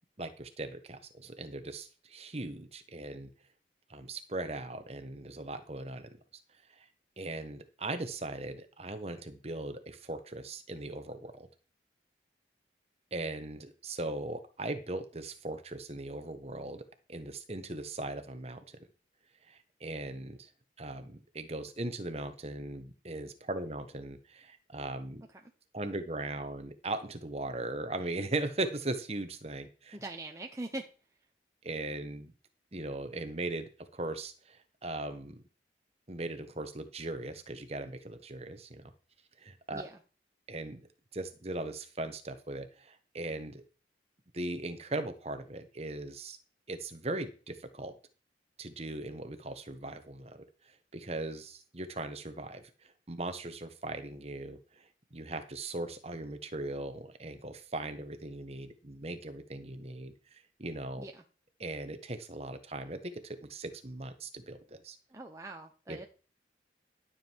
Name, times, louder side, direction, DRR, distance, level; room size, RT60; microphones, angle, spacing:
voice 1, 0.2-3.3 3.9-6.1 6.8-6.9 7.2-11.5 13.1-16.8 17.1-18.8 19.5-20.5 20.8-25.2 25.7-30.0 31.6-32.3 32.7-35.4 36.1-38.9 39.4-39.8 40.5-40.8 41.1-43.6 44.3-46.4 46.7-47.9 48.6-52.6 53.1-54.8 55.1-61.0 61.6-65.0 65.9-66.0, right 2 dB, 35° right, 8 dB, 1.3 m, -39 dB
voice 2, 29.9-30.9 39.7-40.0 61.0-61.2 65.1-66.1, right 2 dB, 15° right, 3 dB, 0.9 m, -42 dB
13.0 x 7.5 x 4.6 m, 0.37 s
head